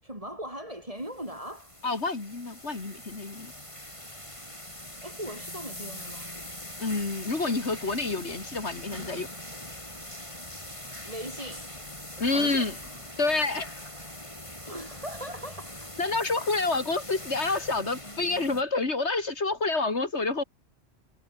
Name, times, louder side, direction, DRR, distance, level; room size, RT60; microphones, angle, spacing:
voice 1, 0.0-1.8 5.0-6.3 11.0-11.7 12.2-12.8 14.6-15.9, equal, 30° right, 7.1 m, -39 dB
sound 1, 1.0-18.6, left 1 dB, 30° left, 6.6 m, -42 dB
voice 2, 1.8-3.5 6.8-9.3 12.2-12.7 13.2-13.7 16.0-20.4, left 3 dB, 80° left, 3.3 m, -28 dB
omnidirectional pair, 1.1 m